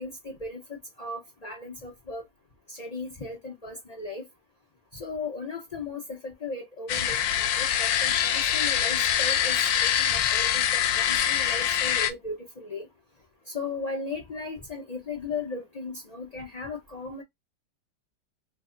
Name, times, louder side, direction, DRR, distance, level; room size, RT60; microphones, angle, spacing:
voice 1, 0.0-2.2 2.7-4.2 4.9-12.9 13.5-17.2, left 3 dB, 70° left, 0.3 m, -37 dB
sound 1, 6.9-12.1, left 10 dB, 90° left, 1.3 m, -24 dB
3.2 x 2.1 x 3.7 m
omnidirectional pair, 2.0 m